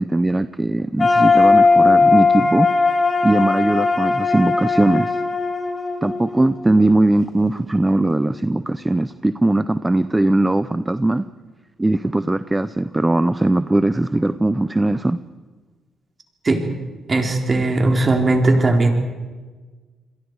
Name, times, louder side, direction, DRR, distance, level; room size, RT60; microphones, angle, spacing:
voice 1, 0.0-2.7 3.2-5.2 6.0-11.3 11.8-15.2, right 2 dB, 15° right, 13 dB, 0.6 m, -19 dB
sound 1, 1.0-6.9, left 4 dB, 30° left, 6.8 m, -18 dB
voice 2, 17.1-18.9, right 2 dB, 30° right, 2 dB, 3.9 m, -17 dB
28.0 x 22.0 x 4.8 m, 1.4 s
cardioid pair, 90°, 0 cm